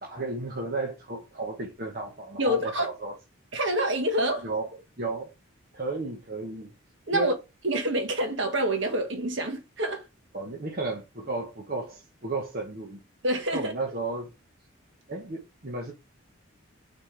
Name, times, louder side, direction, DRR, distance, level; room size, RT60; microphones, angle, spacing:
voice 1, 0.0-3.1 4.4-4.7 5.0-5.3 5.7-6.7 7.1-7.3 10.3-13.0 13.5-14.3 15.1-15.9, right 2 dB, 45° right, 1.1 m, -33 dB
voice 2, 2.4-2.9 3.5-4.5 7.1-7.3 7.6-10.0 13.2-13.7, right 1 dB, 60° right, 1.4 m, -27 dB
7.0 x 4.4 x 3.3 m
head